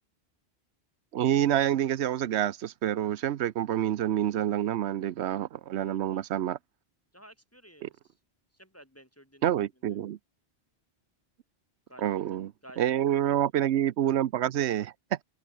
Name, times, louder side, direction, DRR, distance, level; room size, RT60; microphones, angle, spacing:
voice 1, 1.1-6.6 7.8-7.9 9.4-10.2 12.0-15.2, right 11 dB, 85° right, 0.9 m, -27 dB
voice 2, 5.8-6.3 7.1-8.0 8.5-10.0 11.9-13.5, equal, 15° left, 2.7 m, -55 dB
omnidirectional pair, 1.1 m